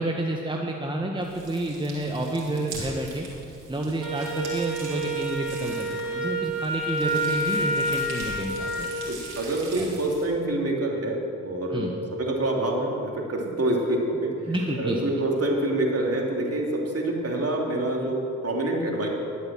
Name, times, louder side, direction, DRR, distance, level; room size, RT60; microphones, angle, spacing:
voice 1, 0.0-3.3 3.7-9.0 9.8-9.9 11.7-11.9 14.5-15.0, right 1 dB, 15° right, 0 dB, 1.5 m, -29 dB
sound 1, 1.2-10.2, right 3 dB, 80° right, 3.3 m, -42 dB
Wind instrument woodwind instrument, 4.0-8.9, right 1 dB, 65° right, 3.7 m, -28 dB
voice 2, 9.1-19.1, right 1 dB, 40° right, -1 dB, 3.0 m, -27 dB
11.5 x 8.1 x 7.6 m, 2.5 s
hypercardioid pair, 40°, 36 cm